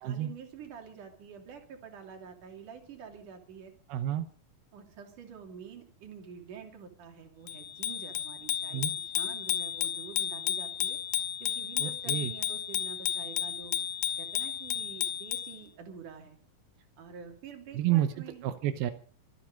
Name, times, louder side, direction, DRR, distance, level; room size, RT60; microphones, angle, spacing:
voice 1, 0.0-3.7 4.7-13.7 14.2-16.4 17.0-18.4, right 7 dB, 60° right, 4 dB, 4.3 m, -47 dB
voice 2, 3.9-4.3 8.7-8.9 11.8-12.3 17.7-18.1 18.4-18.9, right 12 dB, 90° right, 9 dB, 2.9 m, -29 dB
Bicycle bell, 7.5-15.6, left 11 dB, 90° left, 3.0 m, -33 dB
25.0 x 9.8 x 5.3 m, 0.43 s
omnidirectional pair, 4.3 m